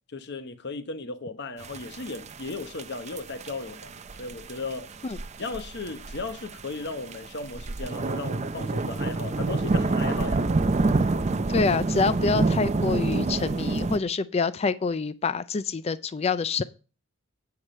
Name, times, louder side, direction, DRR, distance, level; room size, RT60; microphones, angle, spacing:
voice 1, 0.1-4.9 5.4-10.5, left 3 dB, 50° left, 0.9 m, -36 dB
sound 1, 1.6-14.0, right 3 dB, 30° right, 0.5 m, -28 dB
voice 2, 11.5-16.6, left 4 dB, 30° left, 0.4 m, -26 dB
8.8 x 4.7 x 6.5 m
head